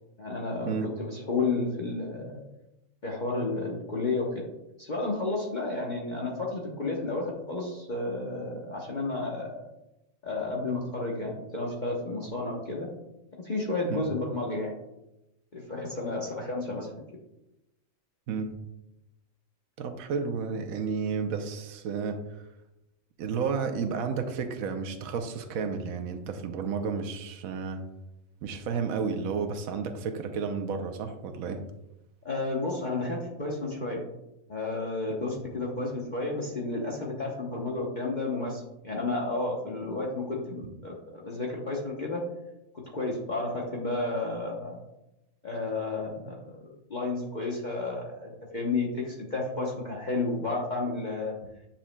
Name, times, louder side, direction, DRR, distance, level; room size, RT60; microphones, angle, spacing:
voice 1, 0.2-2.4 3.0-4.4 4.8-9.7 10.2-12.9 13.4-14.8 15.5-16.9 32.2-34.0 34.5-42.2 42.7-44.8 45.4-51.3, left 3 dB, 40° left, -3 dB, 1.0 m, -32 dB
voice 2, 19.8-22.2 23.2-27.8 28.4-31.6, right 5 dB, 80° right, 6 dB, 1.1 m, -32 dB
9.8 x 5.7 x 2.2 m, 0.92 s
omnidirectional pair, 1.4 m